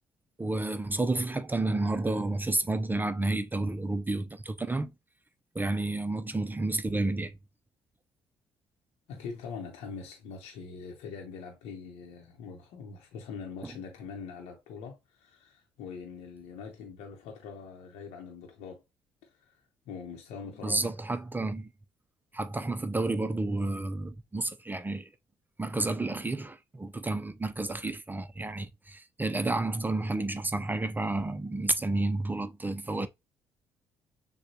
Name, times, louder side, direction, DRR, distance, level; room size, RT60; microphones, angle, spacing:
voice 1, 0.4-4.9 5.5-7.3 13.6-13.7 20.6-21.7 22.3-25.1 25.6-33.1, right 2 dB, 15° right, 0.5 m, -30 dB
voice 2, 9.1-18.8 19.2-20.9, left 5 dB, 75° left, 0.8 m, -43 dB
6.4 x 2.2 x 2.8 m
hypercardioid pair, 55°, 11 cm